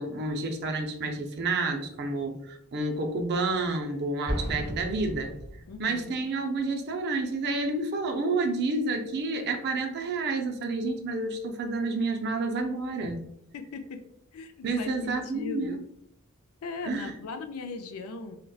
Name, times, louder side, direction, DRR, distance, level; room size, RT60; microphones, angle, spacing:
voice 1, 0.0-5.3 5.8-13.2 14.6-15.8 16.8-17.1, right 3 dB, 50° right, 5 dB, 0.4 m, -29 dB
Explosion, 4.3-6.1, equal, 20° right, 1.3 m, -34 dB
voice 2, 5.7-6.1 13.0-13.1 13.5-14.0 14.3-15.8 16.6-18.4, left 3 dB, 80° left, 7 dB, 0.4 m, -38 dB
3.9 x 2.2 x 2.3 m, 0.74 s
head